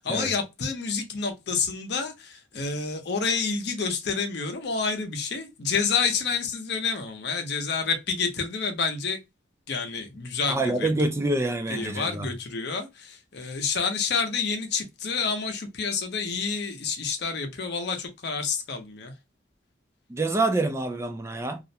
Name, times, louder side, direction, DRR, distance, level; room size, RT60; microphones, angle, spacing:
voice 1, 0.0-9.2 9.7-10.9 11.7-19.1, left 5 dB, 60° left, 0.6 m, -29 dB
voice 2, 10.5-12.3 20.1-21.6, right 2 dB, 15° right, 0.3 m, -26 dB
2.4 x 2.0 x 2.6 m
head